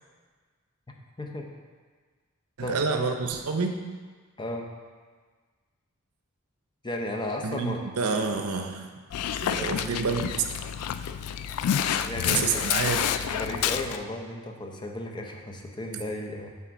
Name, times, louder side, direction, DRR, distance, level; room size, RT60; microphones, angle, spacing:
voice 1, 1.2-1.5 2.6-2.8 4.4-4.7 6.8-7.9 9.6-9.7 12.0-12.7 13.3-16.5, left 1 dB, 20° left, 2 dB, 0.7 m, -34 dB
voice 2, 2.6-3.8 7.4-8.9 9.4-10.2 12.3-13.0, right 4 dB, 75° right, 5 dB, 0.7 m, -28 dB
Dog, 9.1-14.0, left 9 dB, 85° left, 0.3 m, -28 dB
7.7 x 3.6 x 6.0 m, 1.5 s
head